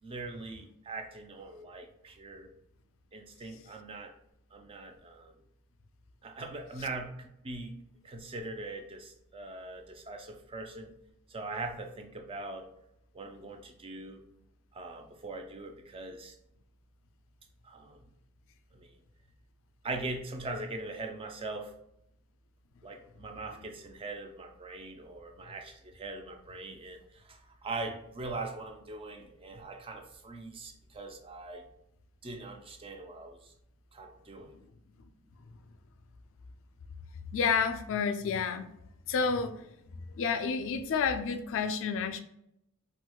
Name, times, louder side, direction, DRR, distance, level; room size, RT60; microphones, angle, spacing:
voice 1, 0.0-2.5 3.1-4.1 4.5-5.3 6.2-7.7 8.0-10.9 11.3-12.7 13.1-14.2 14.7-16.4 17.6-18.0 18.7-18.9 19.8-21.7 22.8-31.6 32.2-33.5 33.9-34.5, right 2 dB, 25° right, 4 dB, 0.4 m, -41 dB
voice 2, 37.3-38.7 39.1-39.6 40.1-42.2, left 5 dB, 60° left, 9 dB, 0.4 m, -29 dB
4.4 x 2.1 x 2.2 m, 0.77 s
head